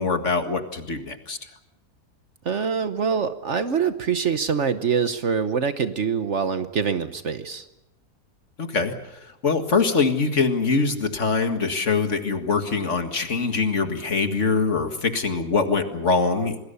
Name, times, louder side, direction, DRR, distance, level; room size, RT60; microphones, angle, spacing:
voice 1, 0.0-1.4 8.6-8.9 9.4-16.6, left 4 dB, 50° left, 7 dB, 2.1 m, -23 dB
voice 2, 2.4-7.7, right 6 dB, 55° right, 11 dB, 1.2 m, -24 dB
27.0 x 20.0 x 6.9 m, 0.89 s
omnidirectional pair, 1.6 m